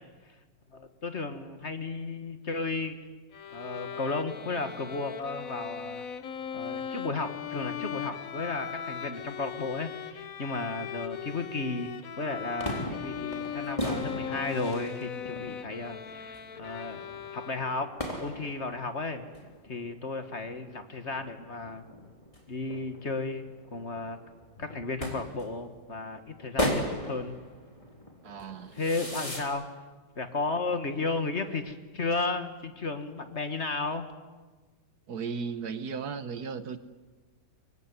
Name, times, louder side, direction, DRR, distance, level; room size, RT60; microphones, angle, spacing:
voice 1, 0.7-3.0 3.5-6.0 6.5-11.9 12.2-17.0 17.3-17.9 18.2-19.2 19.7-21.8 22.5-24.2 24.6-27.4 28.7-29.6 30.2-34.1, left 3 dB, 40° left, 8 dB, 1.8 m, -34 dB
Bowed string instrument, 3.3-18.0, left 7 dB, 55° left, 1.4 m, -39 dB
sound 1, 12.6-29.4, equal, 20° left, 3.6 m, -38 dB
voice 2, 28.2-28.8 35.1-36.8, right 5 dB, 65° right, 12 dB, 1.6 m, -36 dB
24.5 x 23.5 x 9.7 m, 1.3 s
omnidirectional pair, 1.9 m